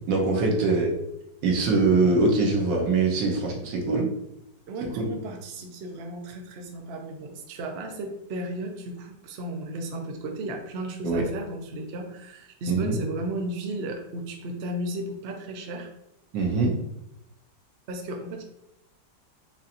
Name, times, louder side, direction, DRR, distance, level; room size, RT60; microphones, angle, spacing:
voice 1, 0.1-0.9 1.4-4.2 5.0-5.1 11.0-11.2 12.7-13.0 16.3-16.8, right 3 dB, 90° right, 0 dB, 1.6 m, -23 dB
voice 2, 4.7-15.9 17.9-18.4, right 1 dB, 60° right, 3 dB, 0.6 m, -34 dB
5.4 x 2.8 x 2.5 m, 0.83 s
omnidirectional pair, 1.9 m